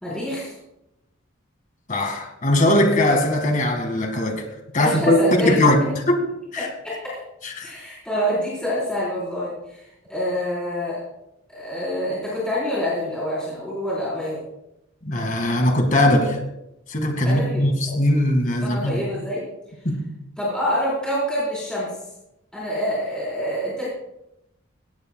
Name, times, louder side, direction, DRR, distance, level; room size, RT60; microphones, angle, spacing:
voice 1, 0.0-0.5 4.8-5.6 6.6-7.2 7.6-9.8 10.1-11.0 11.5-14.4 17.2-18.0 18.6-19.4 20.4-21.9 22.5-23.8, equal, 5° left, -9 dB, 4.2 m, -26 dB
voice 2, 1.9-4.5 4.7-6.7 7.4-7.7 15.0-16.4 16.9-19.0 19.8-20.1, left 1 dB, 40° left, 5 dB, 2.0 m, -20 dB
17.0 x 16.5 x 2.3 m, 0.88 s
head